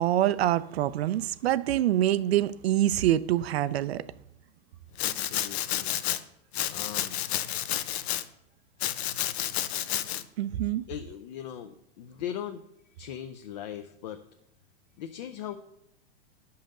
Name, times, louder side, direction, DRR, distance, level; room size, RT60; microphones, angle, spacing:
voice 1, 0.0-4.0 10.4-10.8, right 13 dB, 80° right, 0.6 m, -25 dB
Domestic sounds home sounds, 5.0-6.2 6.5-8.2 8.8-10.2, left 12 dB, 85° left, 0.8 m, -30 dB
voice 2, 5.0-6.0 6.7-7.2 7.6-7.8 9.6-9.9 10.9-12.6 13.0-14.2 15.0-15.6, left 10 dB, 45° left, 0.5 m, -39 dB
10.0 x 5.6 x 6.6 m
supercardioid pair, 175°, 31 cm